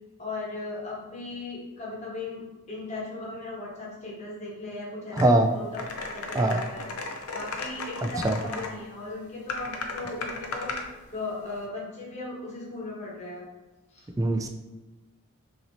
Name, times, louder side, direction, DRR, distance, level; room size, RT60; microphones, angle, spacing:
voice 1, 0.2-6.9 7.3-13.5 13.9-14.1, left 2 dB, 30° left, -4 dB, 1.3 m, -37 dB
sound 1, 5.2-5.3 5.7-8.7 9.5-10.9, left 3 dB, 90° left, 0.6 m, -35 dB
voice 2, 5.2-5.5 6.4-6.6 8.2-8.3 14.2-14.5, right 1 dB, 15° right, 6 dB, 0.3 m, -21 dB
5.8 x 3.0 x 2.8 m, 1.1 s
head